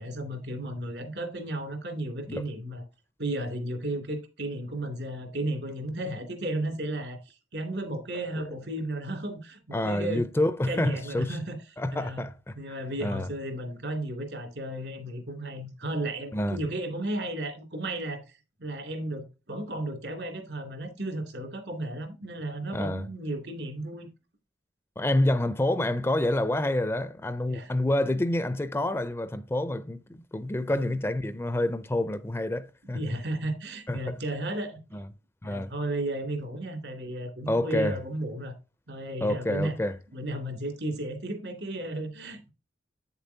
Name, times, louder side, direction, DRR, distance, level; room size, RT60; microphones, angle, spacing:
voice 1, 0.0-2.8 3.2-10.2 10.7-11.6 11.9-12.2 12.5-18.2 18.6-24.1 27.5-27.7 30.7-30.8 32.9-34.8 35.4-38.5 38.9-39.7 40.1-42.5, right 1 dB, 75° right, 2.4 m, -34 dB
voice 2, 9.7-11.4 11.8-12.6 13.0-13.3 16.3-16.6 22.7-23.1 25.0-33.0 33.9-34.2 34.9-35.1 35.4-35.7 37.5-38.0 39.2-39.9, left 1 dB, 15° left, 0.4 m, -28 dB
8.7 x 6.8 x 2.7 m
head